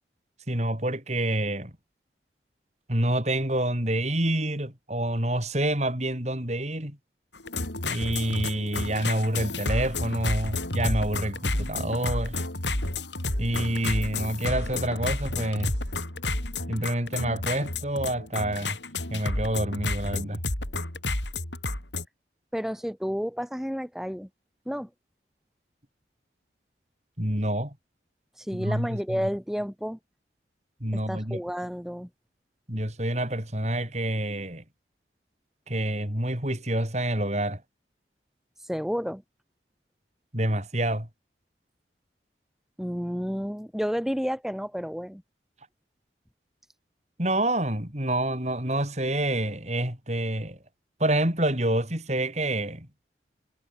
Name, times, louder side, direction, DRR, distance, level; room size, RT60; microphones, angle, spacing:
voice 1, 0.5-1.7 2.9-7.0 7.8-12.4 13.4-15.7 16.7-18.8 19.1-20.4 27.2-27.7 28.5-29.3 30.8-31.4 32.7-34.6 35.7-37.6 40.3-41.1 47.2-50.6 51.0-52.9, right 1 dB, 40° right, 6.2 m, -27 dB
sound 1, 7.4-22.0, left 2 dB, 85° left, 6.7 m, -31 dB
voice 2, 22.5-24.3 24.7-24.9 28.4-30.0 31.1-32.1 38.7-39.2 42.8-45.2, equal, ahead, 6.0 m, -31 dB
head